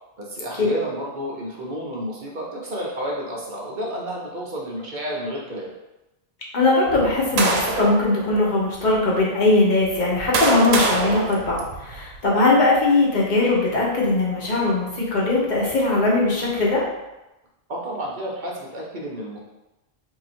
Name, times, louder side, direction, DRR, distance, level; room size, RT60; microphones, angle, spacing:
voice 1, 0.2-5.7 17.7-19.4, equal, 50° right, -3 dB, 0.8 m, -31 dB
voice 2, 6.5-16.8, left 2 dB, 50° left, -4 dB, 1.0 m, -20 dB
sound 1, 6.9-8.0 8.8-8.9 9.8-12.2, right 3 dB, 85° right, 0.8 m, -25 dB
2.8 x 2.6 x 4.2 m, 0.98 s
omnidirectional pair, 1.1 m